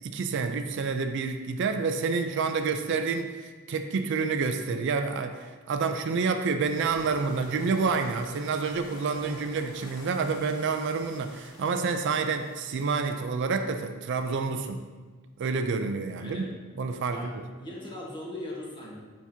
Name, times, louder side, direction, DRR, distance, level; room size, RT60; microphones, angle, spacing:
voice 1, 0.0-14.8 15.4-16.4 16.8-17.3, right 4 dB, 60° right, 7 dB, 0.4 m, -28 dB
sound 1, 6.6-13.0, left 2 dB, 80° left, 0.8 m, -47 dB
voice 2, 16.2-16.5 17.1-19.0, left 1 dB, 25° left, -3 dB, 1.3 m, -39 dB
7.1 x 5.8 x 2.7 m, 1.4 s
head